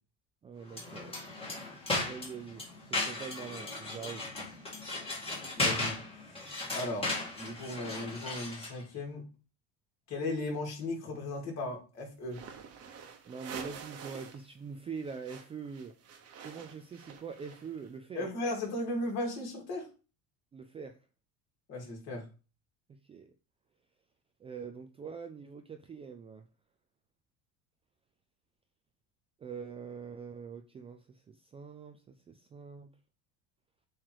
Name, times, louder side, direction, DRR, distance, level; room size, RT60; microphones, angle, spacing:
voice 1, 0.4-1.1 2.0-2.6 2.9-4.3 13.3-15.9 16.4-18.3 20.5-21.0 22.9-23.3 24.4-26.4 29.4-32.9, right 6 dB, 15° right, 6 dB, 0.3 m, -44 dB
sound 1, 0.7-8.8, left 2 dB, 15° left, 2.1 m, -36 dB
voice 2, 5.6-6.0 6.7-9.3 10.1-12.4 18.1-19.9 21.7-22.2, left 2 dB, 45° left, 0 dB, 3.1 m, -36 dB
sound 2, 12.3-14.5 14.7-17.9, right 6 dB, 40° right, 1.1 m, -47 dB
7.5 x 3.2 x 4.7 m, 0.34 s
cardioid pair, 145°, 36 cm